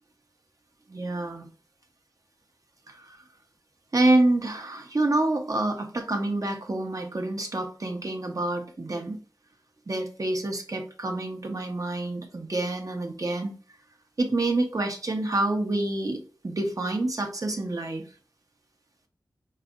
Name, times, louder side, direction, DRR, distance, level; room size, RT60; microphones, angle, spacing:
voice 1, 0.9-1.5 2.9-3.2 3.9-9.2 9.9-13.5 14.2-18.1, right 2 dB, 50° right, 4 dB, 1.0 m, -27 dB
5.0 x 3.3 x 2.5 m, 0.39 s
wide cardioid pair, 55°, 7 cm